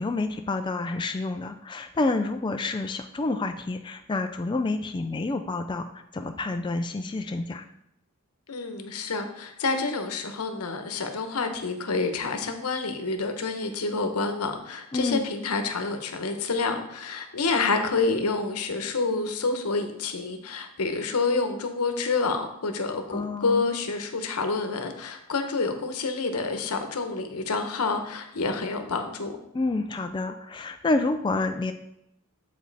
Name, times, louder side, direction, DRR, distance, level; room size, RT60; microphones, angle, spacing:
voice 1, 0.0-7.7 14.9-15.2 23.1-23.6 29.5-31.7, left 2 dB, 20° left, 6 dB, 0.3 m, -28 dB
voice 2, 8.5-29.3, left 3 dB, 85° left, 6 dB, 0.9 m, -28 dB
7.6 x 5.2 x 4.0 m, 0.76 s
head